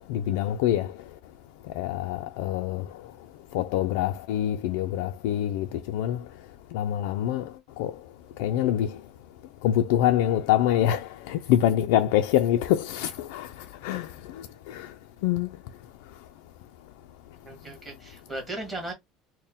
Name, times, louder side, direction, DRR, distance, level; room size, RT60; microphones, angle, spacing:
voice 1, 0.1-0.9 1.8-2.9 3.5-6.2 6.7-7.5 7.8-7.9 8.4-9.0 9.6-13.5 13.8-14.9 15.2-15.6, left 11 dB, 80° left, 0.4 m, -25 dB
voice 2, 17.4-18.9, right 2 dB, 10° right, 1.4 m, -36 dB
4.3 x 2.1 x 3.5 m
cardioid pair, 175°, 0 cm